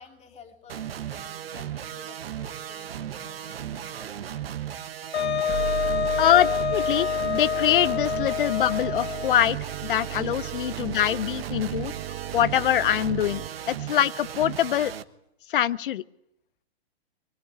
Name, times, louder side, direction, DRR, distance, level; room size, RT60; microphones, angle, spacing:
voice 1, 0.0-6.2 10.7-11.0, left 6 dB, 20° left, 3 dB, 3.0 m, -53 dB
sound 1, 0.7-15.0, right 10 dB, 65° right, 1.3 m, -36 dB
Wind instrument woodwind instrument, 5.1-9.5, left 8 dB, 75° left, 1.5 m, -27 dB
sound 2, 5.5-13.5, right 11 dB, 35° right, 1.5 m, -35 dB
voice 2, 6.2-11.9 12.3-14.9 15.5-16.1, left 11 dB, 55° left, 19 dB, 0.9 m, -24 dB
23.5 x 17.0 x 9.7 m, 0.78 s
figure-of-eight pair, 120°, 32 cm